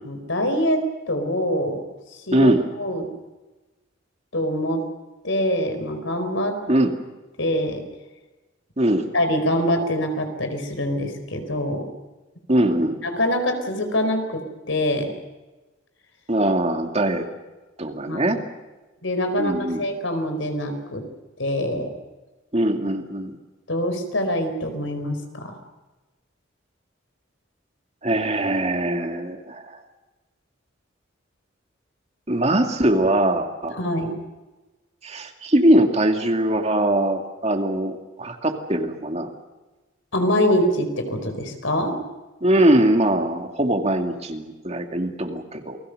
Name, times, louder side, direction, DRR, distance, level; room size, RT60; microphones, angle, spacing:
voice 1, 0.1-1.8 2.3-3.1 4.3-4.9 5.2-6.6 7.4-7.8 9.1-11.8 13.0-15.1 18.1-18.4 19.0-21.0 21.4-21.9 23.7-25.5 33.7-34.2 40.1-42.0, equal, 75° left, 7 dB, 4.6 m, -24 dB
voice 2, 2.3-2.7 6.7-6.9 8.8-9.1 12.5-13.0 16.3-17.3 17.8-18.4 19.4-19.8 22.5-23.4 28.0-29.8 32.3-33.7 35.0-39.3 42.4-45.8, right 1 dB, 35° right, 4 dB, 2.4 m, -21 dB
29.0 x 20.5 x 6.6 m, 1.2 s
head